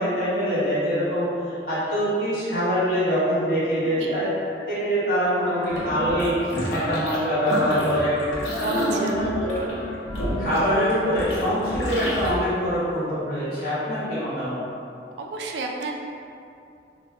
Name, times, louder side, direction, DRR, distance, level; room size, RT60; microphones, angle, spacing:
voice 1, 0.0-4.3 4.6-6.3 6.7-8.1 8.6-9.5 10.2-14.6, equal, 55° left, -12 dB, 1.5 m, -24 dB
Wind instrument woodwind instrument, 5.3-11.0, left 1 dB, 10° left, 0.7 m, -37 dB
sound 1, 5.6-7.2 7.5-12.3, equal, 85° left, 0.7 m, -29 dB
voice 2, 8.9-9.6 15.2-16.0, right 3 dB, 70° right, 1 dB, 0.3 m, -33 dB
3.0 x 2.1 x 3.3 m, 2.6 s
head